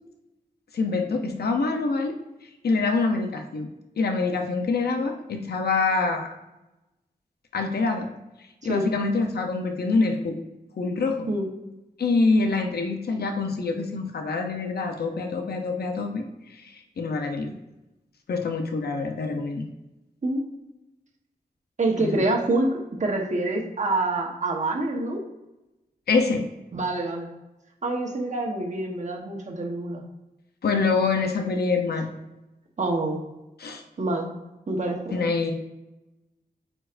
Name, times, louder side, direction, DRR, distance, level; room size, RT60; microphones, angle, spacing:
voice 1, 0.7-2.2 2.6-3.7 4.0-6.3 7.5-8.1 8.6-10.4 10.8-11.3 12.0-16.2 16.5-17.5 18.3-19.7 22.0-22.2 26.1-26.5 30.6-32.1 33.6-33.8 35.1-35.5, left 3 dB, 85° left, 4 dB, 0.7 m, -25 dB
voice 2, 21.8-22.7 23.0-25.2 26.7-27.3 27.8-30.0 32.8-33.2 34.0-34.3 34.7-35.3, right 2 dB, 50° right, 0 dB, 1.2 m, -26 dB
8.8 x 4.4 x 2.6 m, 0.98 s
wide cardioid pair, 100°, 16 cm